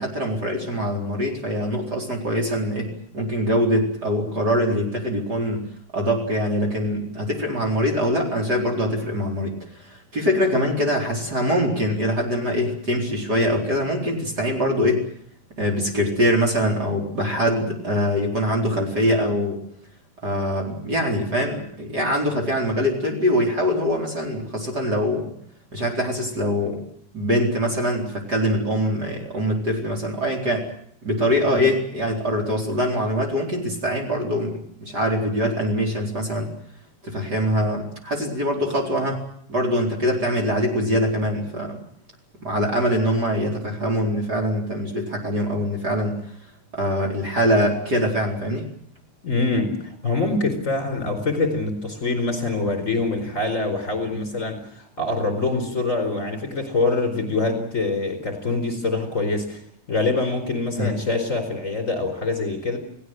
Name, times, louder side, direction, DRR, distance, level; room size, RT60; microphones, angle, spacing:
voice 1, 0.0-5.7 5.9-15.1 15.6-19.6 20.2-25.3 25.7-26.8 27.1-30.7 31.0-36.5 37.0-39.2 39.5-41.8 42.4-46.2 46.7-48.7 60.7-61.0, equal, 35° right, 0 dB, 4.7 m, -23 dB
voice 2, 49.2-59.6 59.9-62.8, left 3 dB, 25° left, 5 dB, 4.7 m, -25 dB
29.5 x 18.0 x 7.8 m, 0.66 s
omnidirectional pair, 3.3 m